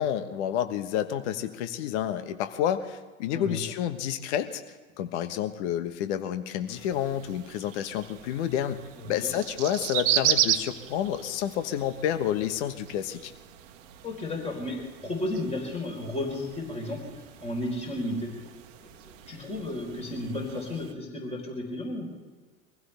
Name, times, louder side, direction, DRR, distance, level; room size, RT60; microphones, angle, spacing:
voice 1, 0.0-4.6 5.0-8.8 9.1-13.3, left 10 dB, 50° left, 10 dB, 1.3 m, -29 dB
voice 2, 3.3-3.7 9.0-9.3 14.0-18.3 18.8-22.1, left 1 dB, 15° left, 0 dB, 4.2 m, -33 dB
sound 1, 6.7-20.9, right 11 dB, 55° right, 1.3 m, -35 dB
23.5 x 15.5 x 3.4 m, 1.4 s
figure-of-eight pair, 95°, 44 cm